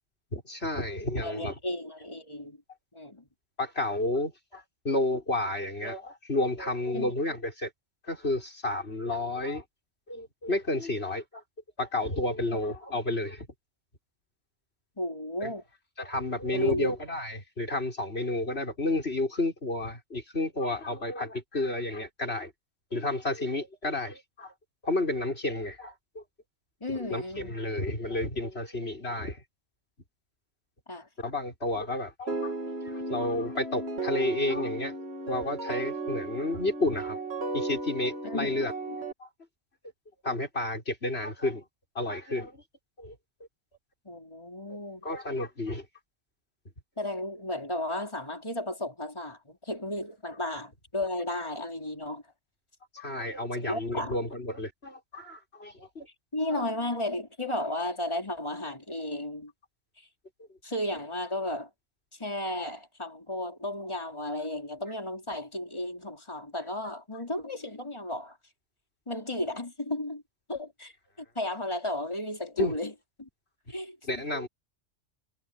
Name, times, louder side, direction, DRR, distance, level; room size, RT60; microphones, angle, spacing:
voice 1, 0.3-1.6 3.6-7.7 8.0-9.6 10.1-11.4 11.8-13.5 15.4-15.5 16.0-22.5 22.9-24.5 24.8-26.2 26.9-29.4 31.2-32.5 32.8-35.0 35.3-37.2 37.5-38.7 39.2-39.3 40.2-41.6 41.9-42.6 43.0-43.2 44.7-44.8 45.0-45.9 52.9-56.1 56.5-56.6 72.6-72.8 74.1-74.5, left 2 dB, 55° left, 6.6 m, -31 dB
voice 2, 1.2-2.6 2.9-3.3 6.9-7.1 15.0-15.6 16.5-16.9 26.8-27.5 30.9-31.1 38.2-38.6 44.0-45.0 47.0-52.2 53.6-54.1 56.3-59.5 60.6-61.7 62.2-68.4 69.1-70.2 70.5-70.9 71.4-72.9 73.2-73.3 73.7-74.0, left 1 dB, 20° left, 4.3 m, -34 dB
sound 1, 32.3-39.1, right 3 dB, 55° right, 2.6 m, -35 dB
omnidirectional pair, 1.3 m